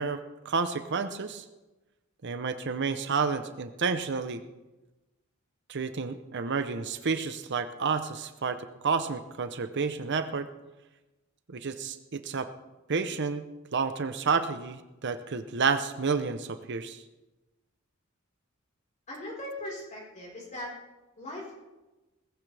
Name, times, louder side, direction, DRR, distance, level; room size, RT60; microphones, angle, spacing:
voice 1, 0.0-1.4 2.2-4.4 5.7-10.5 11.5-12.5 12.9-13.4 13.7-17.0, right 5 dB, 55° right, 10 dB, 0.8 m, -30 dB
voice 2, 19.1-20.8 21.2-21.6, left 1 dB, 35° left, -3 dB, 4.5 m, -39 dB
19.5 x 15.0 x 3.4 m, 1.1 s
head